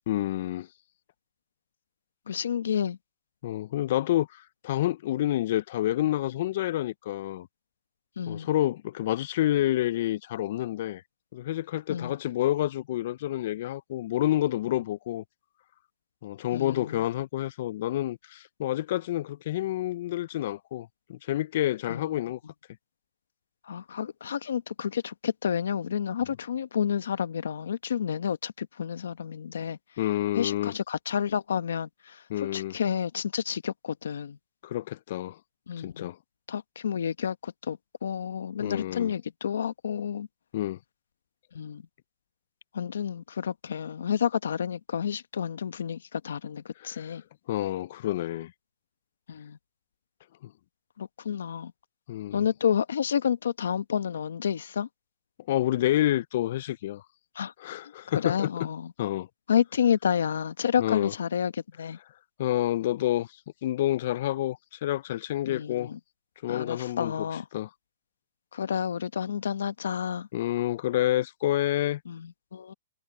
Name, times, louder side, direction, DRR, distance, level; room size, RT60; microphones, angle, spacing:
voice 1, 0.1-0.7 3.4-7.5 8.3-11.0 11.3-15.2 16.2-22.4 30.0-30.7 32.3-32.8 34.6-35.4 35.8-36.2 38.6-39.1 40.5-40.8 46.9-47.1 47.5-48.5 50.4-50.5 52.1-52.5 55.5-57.0 57.6-58.5 59.0-59.3 60.8-61.1 62.4-63.3 63.6-65.9 66.4-67.1 67.5-67.7 70.3-72.0, left 13 dB, 50° left, 0.4 m, -28 dB
voice 2, 2.3-3.0 8.2-8.5 11.9-12.2 16.5-17.0 21.9-22.2 23.6-29.8 30.4-32.2 32.5-34.4 35.7-36.1 36.5-40.3 41.5-41.8 42.7-47.2 49.3-49.6 51.0-51.7 52.3-54.9 57.3-57.5 58.1-58.9 59.5-62.0 65.4-66.0 66.5-67.4 68.5-70.3 72.1-72.7, left 8 dB, 80° left, 1.1 m, -30 dB
hypercardioid pair, 145°, 0 cm